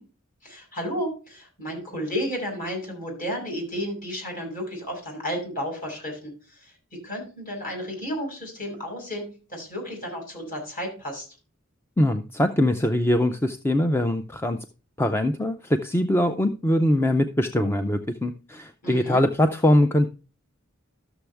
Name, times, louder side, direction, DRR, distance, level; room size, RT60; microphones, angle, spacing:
voice 1, 0.4-6.7 7.0-11.3 18.8-19.2, equal, 45° left, 1 dB, 6.0 m, -32 dB
voice 2, 12.0-14.6 15.0-20.1, left 1 dB, 10° left, 8 dB, 0.5 m, -22 dB
13.0 x 7.0 x 3.4 m, 0.34 s
head